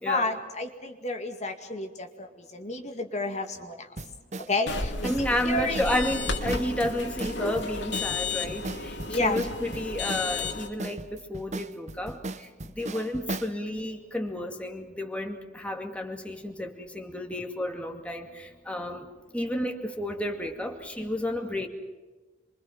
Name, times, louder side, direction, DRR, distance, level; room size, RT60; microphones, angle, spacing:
voice 1, 0.1-2.1 2.5-3.7 4.5-6.0 9.1-9.4, left 2 dB, 40° left, 4 dB, 2.1 m, -30 dB
sound 1, 4.0-13.6, right 2 dB, 40° right, 0.9 m, -38 dB
sound 2, 4.7-10.7, left 3 dB, 75° left, 3.0 m, -33 dB
voice 2, 5.0-21.7, left 1 dB, 5° left, 2 dB, 2.2 m, -32 dB
28.0 x 24.0 x 6.0 m, 1.3 s
head